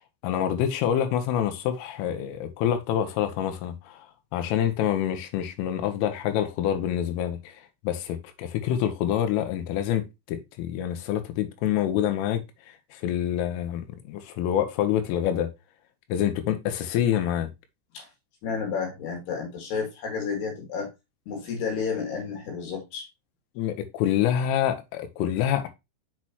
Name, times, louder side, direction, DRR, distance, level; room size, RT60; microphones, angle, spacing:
voice 1, 0.2-4.1 4.3-7.5 7.8-12.4 12.9-15.5 16.1-17.5 23.6-25.7, left 10 dB, 85° left, 3.5 m, -26 dB
voice 2, 18.4-20.9 21.3-23.1, left 5 dB, 60° left, 3.7 m, -31 dB
7.1 x 6.3 x 3.0 m
omnidirectional pair, 5.7 m